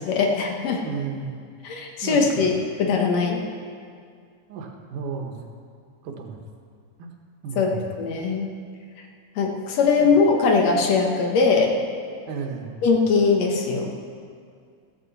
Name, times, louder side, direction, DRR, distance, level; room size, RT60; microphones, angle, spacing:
voice 1, 0.0-0.8 1.6-3.4 7.6-8.5 9.4-11.7 12.8-13.9, left 4 dB, 65° left, 1 dB, 2.3 m, -21 dB
voice 2, 0.8-1.5 2.0-2.5 4.5-5.4 6.0-6.4 7.0-7.1 7.4-7.8 10.0-10.1 12.3-12.8, right 5 dB, 85° right, 3 dB, 2.8 m, -33 dB
15.0 x 14.0 x 4.2 m, 2.2 s
omnidirectional pair, 3.5 m